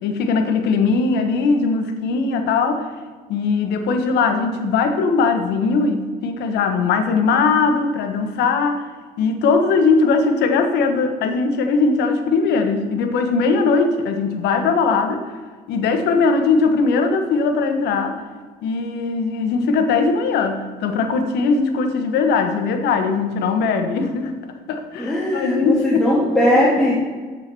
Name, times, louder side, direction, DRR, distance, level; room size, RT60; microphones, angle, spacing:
voice 1, 0.0-2.9 3.3-8.9 9.2-15.2 15.7-18.2 18.6-24.3 24.7-26.0, left 4 dB, 80° left, 6 dB, 1.3 m, -19 dB
voice 2, 25.0-26.9, left 1 dB, 5° left, -7 dB, 2.4 m, -18 dB
7.7 x 7.5 x 6.1 m, 1.5 s
cardioid pair, 110°, 17 cm